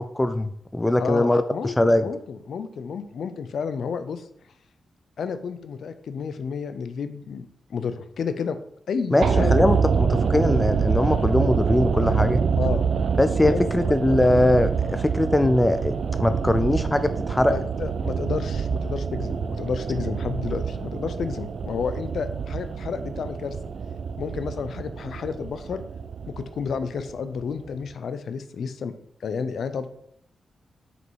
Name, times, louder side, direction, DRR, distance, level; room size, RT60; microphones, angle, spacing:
voice 1, 0.0-2.1 9.1-9.2 9.5-12.4 13.2-17.5, left 1 dB, 10° left, 10 dB, 0.3 m, -21 dB
voice 2, 1.0-4.3 5.2-8.6 8.9-9.6 12.6-12.9 13.5-14.2 17.5-23.6 24.2-25.8 26.3-28.9 29.2-29.9, left 6 dB, 65° left, 11 dB, 0.6 m, -31 dB
sound 1, 9.2-27.4 27.7-27.8, right 6 dB, 55° right, 0.4 m, -26 dB
6.5 x 5.1 x 4.6 m, 0.69 s
wide cardioid pair, 160°, 0 cm